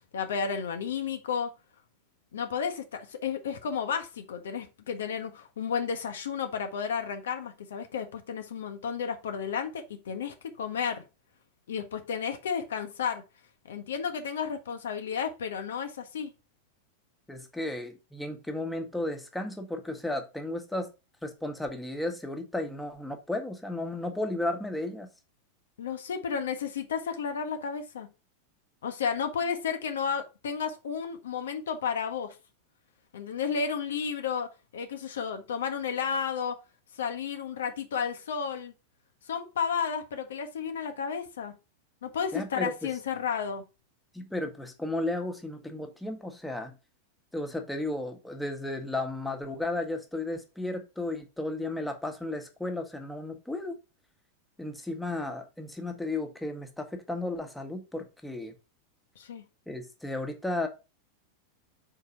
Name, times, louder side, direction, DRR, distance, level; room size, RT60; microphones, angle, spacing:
voice 1, 0.1-1.5 2.3-11.0 11.7-13.2 13.6-16.3 25.8-28.1 28.8-32.4 33.1-36.6 37.0-38.7 39.3-41.5 42.0-43.6 59.2-59.4, left 6 dB, 60° left, 0.8 m, -32 dB
voice 2, 17.3-20.9 21.2-25.1 42.3-42.9 44.1-46.7 47.3-53.8 54.6-58.5 59.7-60.7, left 2 dB, 5° left, 1.2 m, -34 dB
4.7 x 3.8 x 5.5 m
figure-of-eight pair, 90°, 0 cm